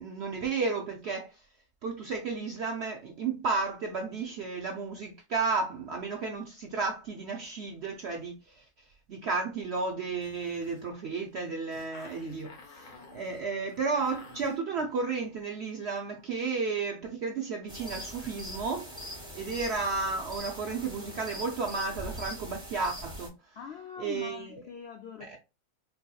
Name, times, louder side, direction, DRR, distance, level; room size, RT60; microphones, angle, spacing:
voice 1, 0.0-1.4 1.8-8.6 9.1-12.5 13.1-19.0 19.3-23.6 24.0-24.6 25.2-25.4, right 4 dB, 70° right, 0.6 m, -33 dB
sound 1, 10.2-15.4, left 3 dB, 40° left, 0.9 m, -52 dB
voice 2, 12.2-12.5 23.6-25.4, left 7 dB, 80° left, 0.5 m, -43 dB
sound 2, 17.7-23.3, equal, 5° right, 1.2 m, -42 dB
4.4 x 2.7 x 2.3 m
omnidirectional pair, 1.7 m